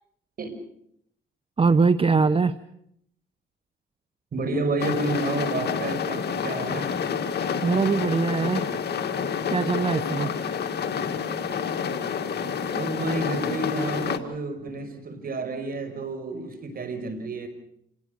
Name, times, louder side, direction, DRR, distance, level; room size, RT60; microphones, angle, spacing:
voice 1, 1.6-2.5 7.6-8.7 9.5-10.3, right 4 dB, 30° right, 13 dB, 0.9 m, -22 dB
voice 2, 4.3-6.9 12.7-17.5, right 2 dB, 50° right, 7 dB, 5.7 m, -30 dB
sound 1, 4.8-14.2, left 6 dB, 55° left, 2.2 m, -28 dB
27.5 x 19.0 x 6.7 m, 0.73 s
cardioid pair, 90°, 20 cm